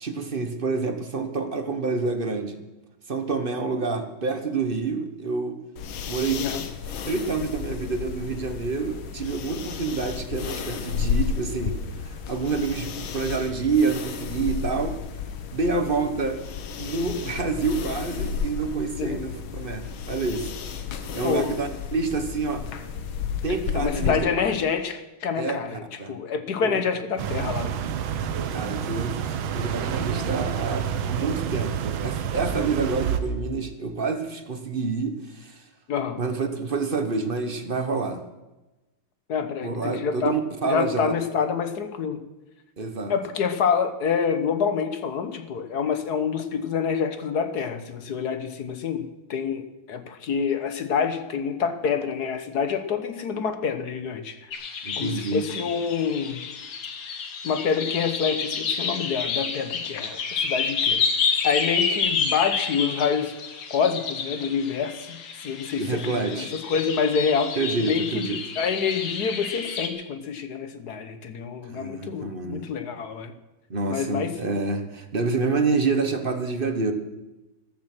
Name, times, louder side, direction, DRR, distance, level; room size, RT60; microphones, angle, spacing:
voice 1, 0.0-2.6 3.1-5.6 6.1-6.4 7.1-11.7 12.0-15.0 15.5-16.4 16.8-20.5 21.1-22.6 23.4-24.2 25.4-25.6 26.0-26.2 26.6-26.8 28.5-29.1 29.5-35.6 36.2-38.2 39.6-41.1 42.8-43.1 54.8-55.5 65.8-66.5 67.6-68.4 71.6-72.7 73.7-76.9, right 4 dB, 35° right, 7 dB, 1.0 m, -27 dB
sound 1, 5.8-24.1, left 7 dB, 75° left, 1.9 m, -32 dB
voice 2, 23.7-27.8 35.9-36.2 39.3-40.4 40.6-42.2 43.1-49.6 49.9-54.4 55.0-56.4 57.4-61.0 61.4-63.3 63.7-68.3 68.6-73.3 73.9-74.5, left 6 dB, 55° left, 9 dB, 1.5 m, -27 dB
sound 2, 27.2-33.2, right 8 dB, 70° right, 1.7 m, -28 dB
sound 3, 54.5-69.9, left 5 dB, 90° left, 2.4 m, -29 dB
14.0 x 13.0 x 6.1 m, 1.1 s
omnidirectional pair, 2.3 m